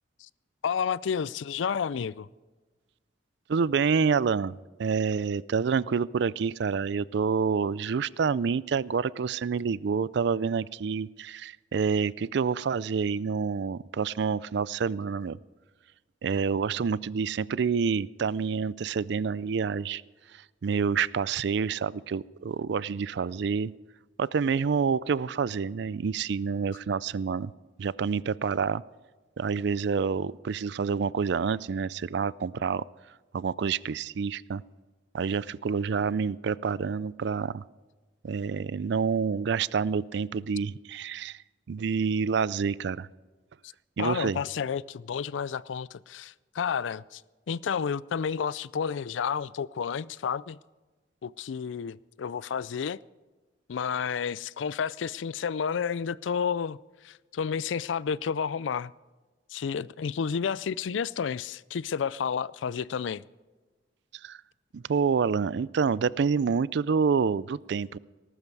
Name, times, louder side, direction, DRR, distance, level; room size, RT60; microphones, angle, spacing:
voice 1, 0.6-2.3 44.0-47.2 47.5-50.6 51.2-53.0 53.7-56.8 57.0-58.9 59.5-63.2, left 7 dB, 85° left, 0.4 m, -31 dB
voice 2, 3.5-15.4 16.2-20.0 20.3-23.7 24.2-27.5 27.8-28.8 29.4-32.8 33.3-34.6 35.1-37.6 38.2-41.4 41.7-43.1 44.0-44.4 64.2-64.4 64.7-68.0, right 5 dB, 65° right, 0.4 m, -28 dB
19.5 x 12.5 x 4.7 m
head